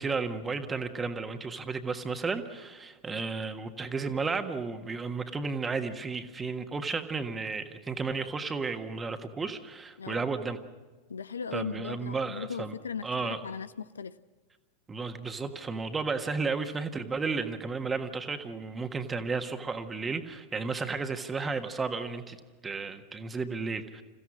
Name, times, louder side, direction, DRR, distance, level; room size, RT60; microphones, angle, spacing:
voice 1, 0.0-10.6 11.5-12.7 13.0-13.4 14.9-22.4 22.6-24.0, right 4 dB, 15° right, 7 dB, 1.6 m, -33 dB
voice 2, 10.0-10.3 11.1-14.1, left 6 dB, 70° left, 16 dB, 0.6 m, -38 dB
28.5 x 16.0 x 6.1 m, 1.3 s
figure-of-eight pair, 90°, 0 cm